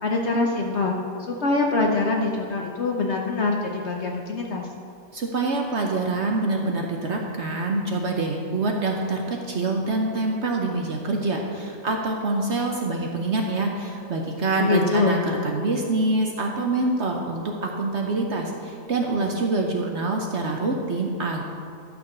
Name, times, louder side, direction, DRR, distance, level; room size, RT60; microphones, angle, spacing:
voice 1, 0.0-0.9 1.3-4.7 14.6-15.2, left 3 dB, 55° left, 1 dB, 0.8 m, -24 dB
voice 2, 5.1-21.4, right 2 dB, 55° right, 1 dB, 0.9 m, -25 dB
12.0 x 4.4 x 6.5 m, 2.3 s
omnidirectional pair, 1.8 m